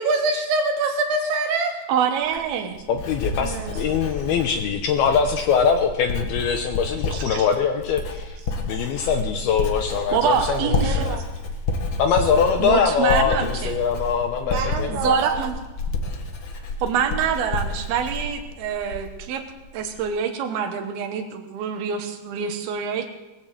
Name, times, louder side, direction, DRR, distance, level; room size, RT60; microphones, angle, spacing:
voice 1, 0.0-1.8 3.3-4.0 7.1-7.4 10.7-11.2 14.5-15.5, right 3 dB, 85° right, 3 dB, 3.7 m, -26 dB
voice 2, 1.9-2.8 10.1-11.1 12.6-13.7 14.9-15.6 16.8-19.4 19.7-23.1, right 7 dB, 65° right, 7 dB, 2.9 m, -25 dB
Writing, 2.2-19.3 19.6-20.0, left 2 dB, 55° left, 1.5 m, -30 dB
voice 3, 2.9-8.4 8.6-10.7 11.0-11.2 12.0-15.2, left 6 dB, 75° left, 5 dB, 2.5 m, -22 dB
19.5 x 9.1 x 7.8 m, 1.1 s
omnidirectional pair, 5.1 m